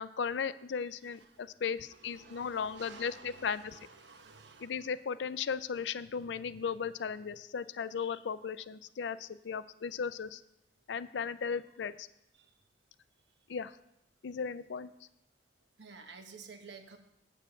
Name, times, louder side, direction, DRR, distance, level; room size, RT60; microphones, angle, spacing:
voice 1, 0.0-3.8 4.6-10.4 10.9-12.1 13.5-13.7 14.2-14.9, left 6 dB, 80° left, 15 dB, 0.4 m, -36 dB
voice 2, 2.0-4.7 15.8-17.0, right 4 dB, 80° right, 6 dB, 1.1 m, -52 dB
8.2 x 6.8 x 7.0 m, 0.84 s
head